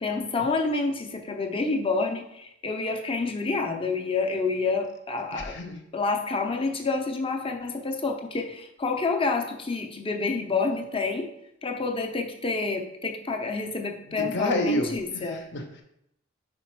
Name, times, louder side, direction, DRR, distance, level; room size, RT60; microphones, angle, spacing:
voice 1, 0.0-5.5 5.9-11.3 11.6-15.4, left 3 dB, 25° left, 3 dB, 0.7 m, -28 dB
voice 2, 5.3-5.8 14.1-15.8, left 1 dB, 60° left, 5 dB, 0.8 m, -30 dB
5.2 x 4.1 x 4.6 m, 0.79 s
head